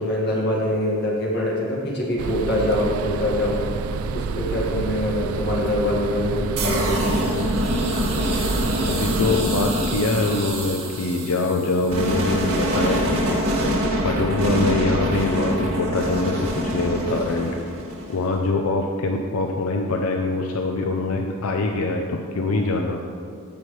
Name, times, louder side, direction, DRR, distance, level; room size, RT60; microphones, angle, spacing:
voice 1, 0.0-3.6 4.1-7.3, left 1 dB, 50° left, -4 dB, 1.9 m, -24 dB
sound 1, 2.2-9.4, right 5 dB, 70° right, 0.3 m, -29 dB
sound 2, 6.6-18.3, equal, 90° right, 1.8 m, -25 dB
voice 2, 8.9-13.4 14.0-17.5 18.1-23.0, left 2 dB, 85° left, 3 dB, 0.6 m, -24 dB
14.0 x 6.1 x 3.2 m, 2.3 s
head